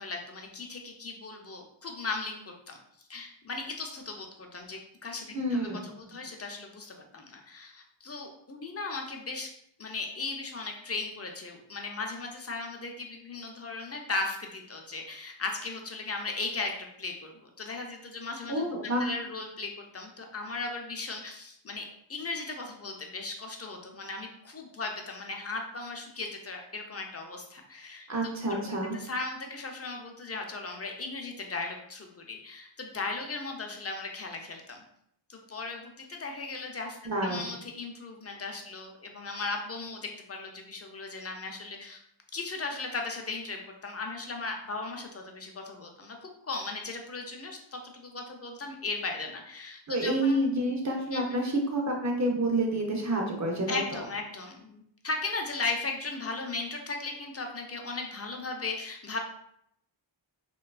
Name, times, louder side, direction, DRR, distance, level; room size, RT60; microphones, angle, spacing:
voice 1, 0.0-2.4 2.7-2.8 3.1-9.5 9.8-28.1 28.5-34.8 35.3-42.0 42.3-50.4 51.1-51.2 53.7-59.2, left 3 dB, 35° left, 2 dB, 0.4 m, -37 dB
voice 2, 5.3-5.9 18.5-19.1 28.1-29.0 37.0-37.5 49.9-54.0, right 1 dB, 40° right, 0 dB, 0.6 m, -29 dB
2.6 x 2.2 x 2.3 m, 0.71 s
wide cardioid pair, 45°, 48 cm